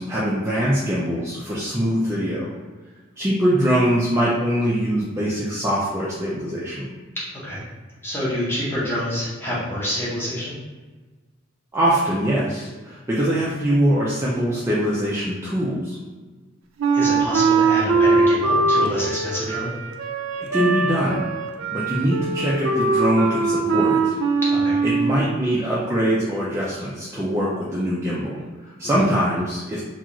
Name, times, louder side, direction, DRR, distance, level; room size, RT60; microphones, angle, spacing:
voice 1, 0.0-2.6 3.2-6.9 11.7-16.0 20.5-21.3 21.7-24.2 24.8-29.8, equal, 15° right, -7 dB, 0.3 m, -23 dB
voice 2, 7.1-7.6 8.0-10.6 16.9-19.7 24.4-24.8 28.8-29.0, left 1 dB, 10° left, -8 dB, 0.7 m, -27 dB
Wind instrument woodwind instrument, 16.8-25.2, right 4 dB, 90° right, 0.4 m, -21 dB
2.4 x 2.3 x 2.9 m, 1.3 s
head